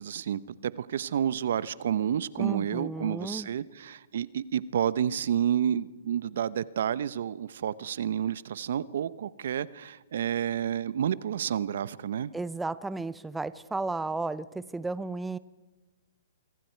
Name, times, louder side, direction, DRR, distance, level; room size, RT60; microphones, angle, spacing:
voice 1, 0.0-12.3, right 9 dB, 65° right, 18 dB, 0.9 m, -30 dB
voice 2, 2.4-3.5 12.3-15.4, right 3 dB, 5° right, 16 dB, 0.7 m, -33 dB
27.0 x 24.5 x 4.6 m, 1.2 s
hypercardioid pair, 135°, 0 cm